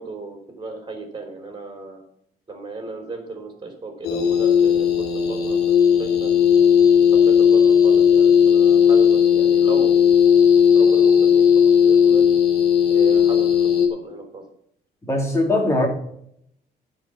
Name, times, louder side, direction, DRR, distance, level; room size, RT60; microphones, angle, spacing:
voice 1, 0.0-2.0 2.5-6.3 7.1-10.1 10.7-11.5 11.8-12.3 12.9-14.4, right 3 dB, 25° right, 4 dB, 3.6 m, -35 dB
sound 1, 4.0-13.9, left 7 dB, 75° left, 2.2 m, -16 dB
voice 2, 15.1-15.9, left 2 dB, 15° left, 0 dB, 3.1 m, -20 dB
11.0 x 4.9 x 7.0 m, 0.71 s
cardioid pair, 110°, 17 cm